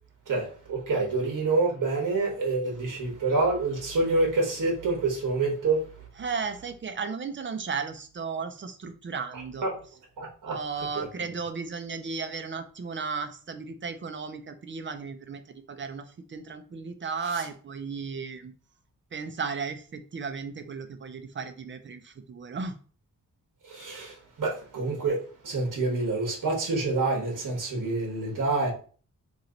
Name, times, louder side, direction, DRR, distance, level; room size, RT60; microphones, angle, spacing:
voice 1, 0.3-5.8 9.3-9.8 10.2-10.6 10.9-11.1 23.6-28.7, right 3 dB, 70° right, 1.3 m, -27 dB
voice 2, 6.2-9.7 10.4-18.5 19.1-22.8, right 5 dB, 35° right, 0.4 m, -35 dB
3.1 x 2.9 x 3.8 m
wide cardioid pair, 155°, 33 cm